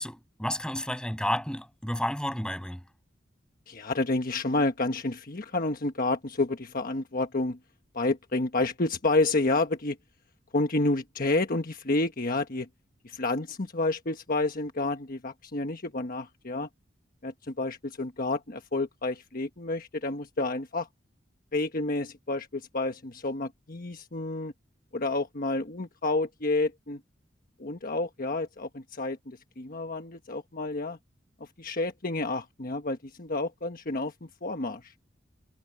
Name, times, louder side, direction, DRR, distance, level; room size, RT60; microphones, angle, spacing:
voice 1, 0.0-2.8, left 1 dB, 5° left, 7.3 m, -31 dB
voice 2, 3.7-7.6 7.9-10.0 10.5-12.7 13.0-16.7 17.2-20.9 21.5-24.5 24.9-27.0 27.6-31.0 31.6-34.1 34.4-34.9, left 2 dB, 50° left, 1.3 m, -29 dB
head